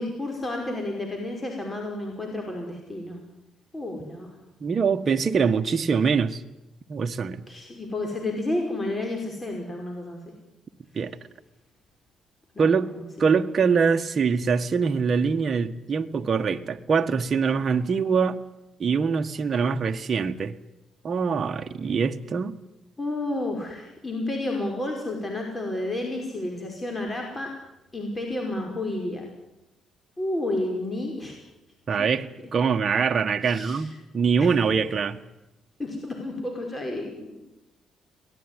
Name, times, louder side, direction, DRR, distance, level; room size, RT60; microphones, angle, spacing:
voice 1, 0.0-3.2 3.7-4.4 7.5-10.2 12.5-13.3 23.0-27.5 27.9-29.2 30.2-31.3 32.0-32.1 33.4-33.8 34.4-34.5 35.8-37.4, left 2 dB, 20° left, 5.4 m, -31 dB
voice 2, 4.6-6.4 6.9-7.4 10.9-11.1 12.6-12.9 13.2-18.4 18.8-20.6 21.0-22.6 31.9-35.2, right 5 dB, 40° right, 1.5 m, -24 dB
23.5 x 18.5 x 10.0 m
cardioid pair, 90°, 0 cm